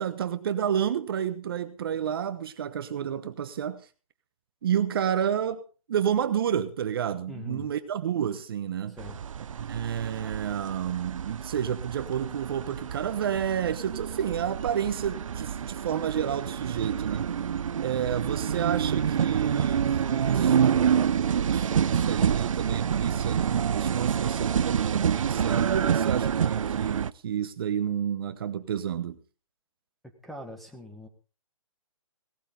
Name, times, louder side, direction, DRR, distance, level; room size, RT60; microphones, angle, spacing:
voice 1, 0.0-3.9 4.6-5.6 5.9-9.0 9.6-17.3 17.8-29.2, right 9 dB, 40° right, 1.1 m, -30 dB
voice 2, 7.3-7.7 8.9-9.2 30.2-31.1, left 1 dB, ahead, 1.6 m, -42 dB
sound 1, 9.0-27.1, right 8 dB, 65° right, 0.6 m, -27 dB
17.5 x 13.0 x 3.8 m
hypercardioid pair, 160°, 18 cm